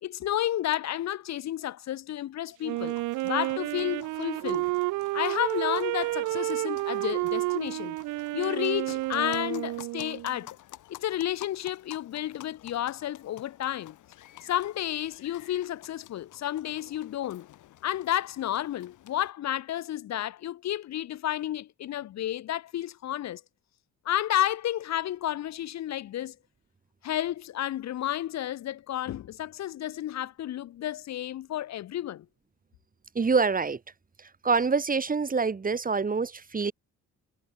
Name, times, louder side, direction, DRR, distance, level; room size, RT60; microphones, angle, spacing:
voice 1, 0.0-3.0 3.2-4.7 5.1-8.0 8.3-10.6 10.9-14.0 14.4-17.5 17.8-23.4 24.0-26.4 27.0-32.2, left 12 dB, 60° left, 0.8 m, -31 dB
Wind instrument woodwind instrument, 2.6-10.4, right 20 dB, 80° right, 0.5 m, -30 dB
sound 1, 2.8-19.3, left 14 dB, 80° left, 3.2 m, -52 dB
voice 2, 33.2-33.8 34.2-36.7, right 4 dB, 30° right, 1.9 m, -26 dB
cardioid pair, 90°, 30 cm